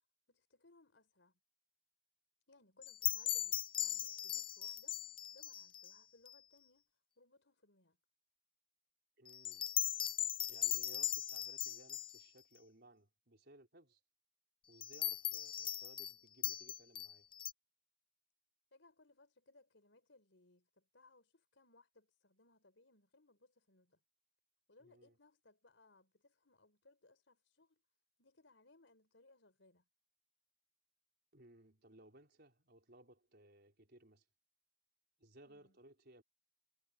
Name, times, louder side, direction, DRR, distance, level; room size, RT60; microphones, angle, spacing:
voice 1, 0.3-1.4 2.5-5.0 5.3-6.9 7.2-8.0 18.7-24.0 24.7-27.8 28.2-29.8 35.4-35.8, left 2 dB, 80° left, 4.7 m, -67 dB
sound 1, 2.8-5.9 6.3-6.4 9.3-12.2 14.8-16.1 16.4-17.5, left 11 dB, 25° left, 0.3 m, -39 dB
voice 2, 9.2-9.7 10.5-14.0 14.7-17.3 24.8-25.2 31.3-34.2 35.2-36.2, right 1 dB, 60° right, 4.8 m, -62 dB
head